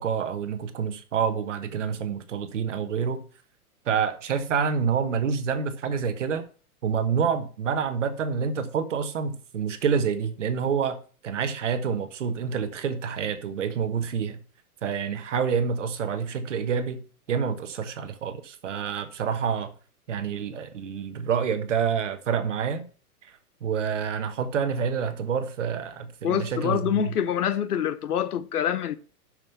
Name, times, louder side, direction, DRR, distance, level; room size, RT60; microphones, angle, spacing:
voice 1, 0.0-3.2 3.8-6.5 6.8-11.0 11.2-14.4 14.8-17.0 17.3-19.7 20.1-22.9 23.2-23.3 23.6-27.1, right 6 dB, 50° right, 1.4 m, -27 dB
voice 2, 26.2-29.0, left 9 dB, 75° left, 1.1 m, -26 dB
7.3 x 6.5 x 6.9 m
hypercardioid pair, 180°, 45 cm